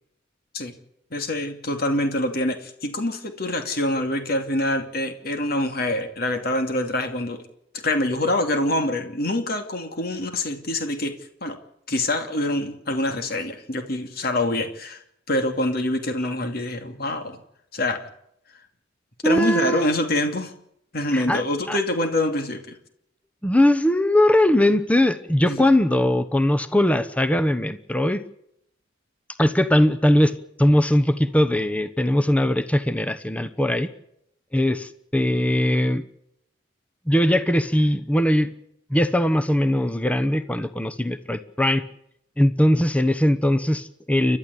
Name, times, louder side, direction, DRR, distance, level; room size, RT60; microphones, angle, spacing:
voice 1, 1.1-7.4 7.7-11.1 11.4-11.6 11.9-15.0 15.3-17.4 17.7-18.0 19.2-20.5 20.9-22.8 25.5-25.7, left 1 dB, 55° left, 6 dB, 2.7 m, -25 dB
voice 2, 19.2-19.9 21.1-21.4 21.7-21.8 23.4-28.2 29.4-33.9 34.5-36.0 37.1-38.5 38.9-41.8 42.4-44.4, left 1 dB, 5° left, 11 dB, 1.0 m, -20 dB
29.5 x 12.5 x 8.5 m, 0.75 s
head